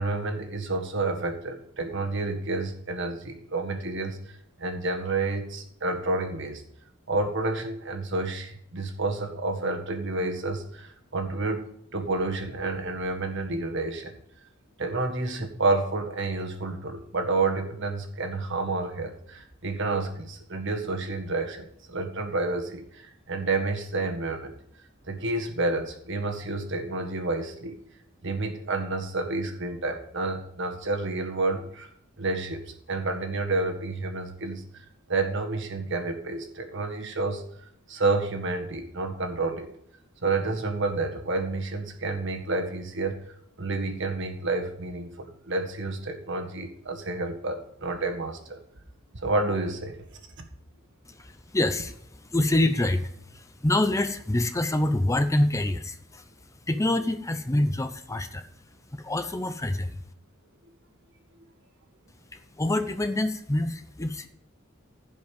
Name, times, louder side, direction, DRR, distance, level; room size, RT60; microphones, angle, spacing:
voice 1, 0.0-6.6 7.1-14.2 14.8-24.5 25.1-27.8 28.2-31.9 32.2-37.4 37.9-39.7 40.2-43.1 43.6-48.6 49.1-50.0, right 3 dB, 60° right, 4 dB, 1.7 m, -29 dB
voice 2, 51.1-56.2 56.7-58.5 58.9-60.0 62.3-64.3, left 1 dB, 15° left, 9 dB, 0.6 m, -26 dB
15.5 x 5.4 x 5.2 m, 0.70 s
head